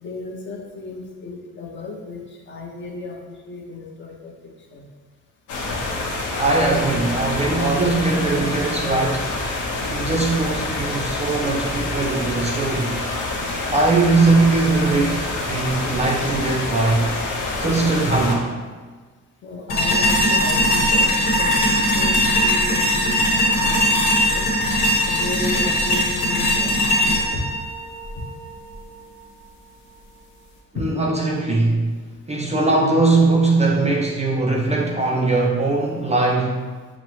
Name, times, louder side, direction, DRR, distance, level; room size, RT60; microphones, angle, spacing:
voice 1, 0.0-4.3 4.7-4.9 19.4-24.4 25.1-27.4 30.8-30.9, left 3 dB, 35° left, 0 dB, 0.6 m, -34 dB
sound 1, 5.5-18.4, left 2 dB, 70° left, 0.7 m, -27 dB
voice 2, 6.4-9.3 9.9-13.0 13.7-17.1 17.6-18.6 30.7-31.9 32.3-36.7, right 3 dB, 20° right, -2 dB, 0.4 m, -20 dB
sound 2, 19.7-28.7, equal, 90° left, 1.1 m, -20 dB
5.8 x 2.0 x 3.0 m, 1.4 s
cardioid pair, 125°, 32 cm